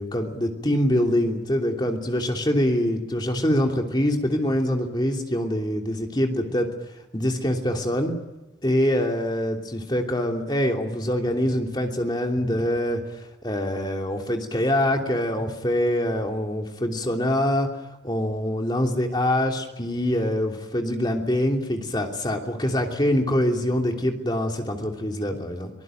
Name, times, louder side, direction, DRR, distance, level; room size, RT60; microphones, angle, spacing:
voice 1, 0.0-6.7 7.1-8.1 8.6-13.0 13.4-17.7 18.0-25.7, left 1 dB, 25° left, 2 dB, 3.0 m, -24 dB
24.0 x 19.0 x 9.2 m, 1.1 s
head